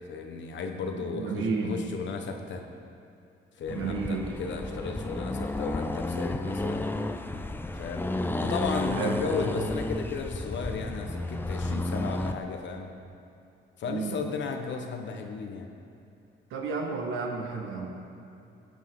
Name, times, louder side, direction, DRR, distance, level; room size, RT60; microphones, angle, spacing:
voice 1, 0.1-2.6 3.6-6.8 7.7-8.0 8.4-12.9 13.8-15.7, left 4 dB, 65° left, 4 dB, 1.2 m, -34 dB
voice 2, 1.0-1.8 3.7-4.3 9.0-9.2 13.9-14.2 16.5-17.9, right 4 dB, 85° right, 0 dB, 1.6 m, -32 dB
Accelerating revving vroom, 3.7-12.4, left 2 dB, 10° left, 0.5 m, -32 dB
13.5 x 8.3 x 3.9 m, 2.6 s
cardioid pair, 90°, 20 cm